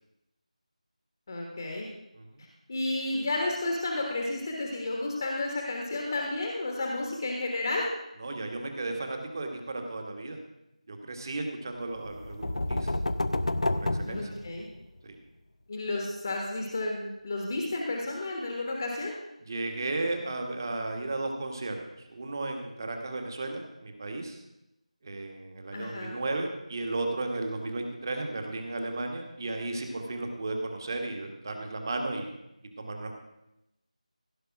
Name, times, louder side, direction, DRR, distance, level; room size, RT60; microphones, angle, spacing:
voice 1, 1.3-1.9 2.7-7.8 14.0-14.6 15.7-19.1 25.7-26.1, left 2 dB, 30° left, 0 dB, 1.4 m, -32 dB
voice 2, 8.2-10.4 10.9-12.9 13.7-14.3 15.0-15.2 19.4-24.4 25.0-32.3 32.8-33.1, right 2 dB, 30° right, 4 dB, 1.6 m, -34 dB
sound 1, 12.1-15.0, left 2 dB, 65° left, 0.6 m, -30 dB
15.5 x 5.5 x 6.1 m, 0.90 s
figure-of-eight pair, 170°, 4 cm